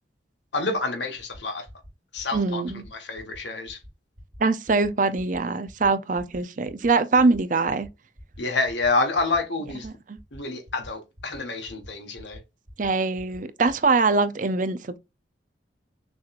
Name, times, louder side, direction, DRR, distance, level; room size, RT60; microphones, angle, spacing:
voice 1, 0.5-1.6 2.1-2.6 2.9-3.8 8.4-9.9 10.3-12.4, left 3 dB, 75° left, 1.4 m, -28 dB
sound 1, 1.2-1.4 1.7-1.9 2.2-2.4 2.7-2.9 3.2-3.4 3.7-3.9 4.2-4.4 4.7-4.9 5.2-5.4 5.7-5.9 6.2-6.4 6.7-6.9 7.2-7.4 7.7-7.9 8.2-8.4 8.7-8.9 9.2-9.4 9.7-9.9 10.2-10.4 10.7-10.9 11.2-11.4 11.7-11.9 12.2-12.4 12.7-12.9 13.2-13.4 13.7-13.8, equal, 85° right, 2.3 m, -45 dB
voice 2, 2.3-2.8 4.4-7.9 9.8-10.2 12.8-15.0, right 3 dB, 45° right, 0.5 m, -23 dB
6.3 x 3.0 x 2.5 m
head